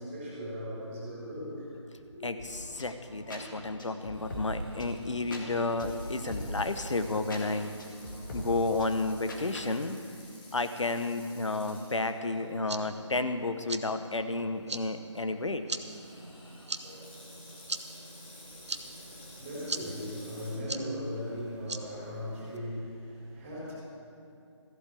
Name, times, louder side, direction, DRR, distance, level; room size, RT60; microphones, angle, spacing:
voice 1, 0.0-1.7 2.1-2.2 18.4-23.7, equal, 15° right, -7 dB, 4.1 m, -38 dB
sound 1, 2.4-9.7, equal, 40° left, 2.1 m, -41 dB
voice 2, 2.7-7.7 8.3-10.0 10.5-15.6, left 3 dB, 70° left, 9 dB, 1.1 m, -31 dB
Water tap faucet / Sink (filling or washing), 4.1-12.5 13.0-13.1 13.8-14.1 15.7-20.6, left 2 dB, 20° left, 2.2 m, -53 dB
sound 2, 12.4-22.6, right 3 dB, 65° right, 0.9 m, -42 dB
14.5 x 8.2 x 8.0 m, 2.6 s
figure-of-eight pair, 160°, 16 cm